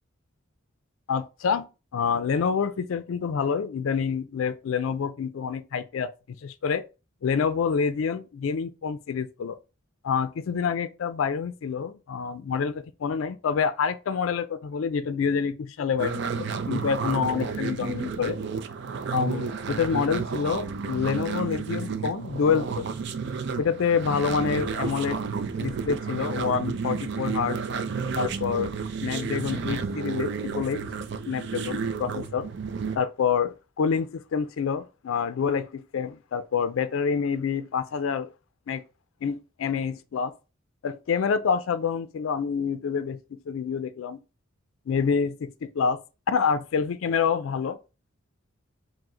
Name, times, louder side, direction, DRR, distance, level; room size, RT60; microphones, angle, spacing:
voice 1, 1.1-6.8 7.2-9.6 10.0-18.4 19.1-22.9 23.6-25.2 25.6-27.6 28.2-28.7 29.0-30.8 31.3-32.5 33.0-38.3 38.7-38.8 39.2-40.3 40.8-44.2 44.9-46.0 46.3-47.8, left 6 dB, 80° left, 0.4 m, -27 dB
sound 1, 16.0-33.0, right 5 dB, 60° right, 0.4 m, -31 dB
4.8 x 2.1 x 3.7 m
head